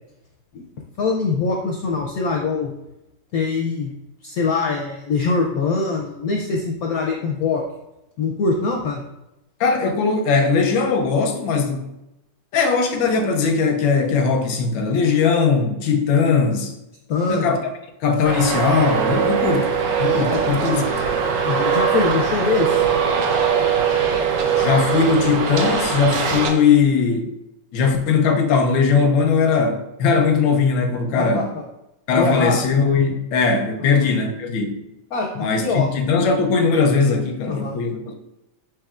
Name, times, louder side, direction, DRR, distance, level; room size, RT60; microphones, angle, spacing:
voice 1, 1.0-2.7 3.3-3.9 4.2-7.6 8.2-9.0 17.1-17.5 21.4-22.8 31.2-31.6 32.2-32.6 35.1-35.9 37.5-37.8, left 4 dB, 70° left, 0.9 m, -23 dB
voice 2, 9.6-11.9 12.5-16.7 17.3-17.6 18.0-19.7 20.0-20.8 24.6-27.3 27.7-31.5 32.1-34.8 35.3-38.1, left 5 dB, 90° left, 1.4 m, -19 dB
Traffic noise roadway noise, 18.3-26.5, right 6 dB, 65° right, 0.8 m, -21 dB
7.1 x 3.0 x 2.4 m
omnidirectional pair, 2.0 m